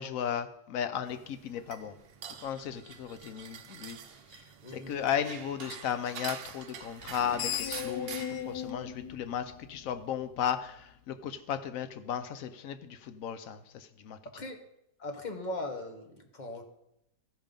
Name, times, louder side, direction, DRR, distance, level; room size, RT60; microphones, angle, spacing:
voice 1, 0.0-1.9 2.4-4.0 4.3-4.4 4.7-14.4, left 9 dB, 65° left, 11 dB, 0.9 m, -35 dB
sound 1, 1.0-8.7, right 7 dB, 70° right, 0.5 m, -46 dB
voice 2, 4.6-4.9 14.3-14.6 15.0-16.1 16.3-16.6, left 2 dB, 30° left, 5 dB, 1.0 m, -38 dB
Screech, 7.0-10.3, left 9 dB, 90° left, 1.3 m, -37 dB
14.5 x 5.4 x 5.2 m, 0.83 s
omnidirectional pair, 1.8 m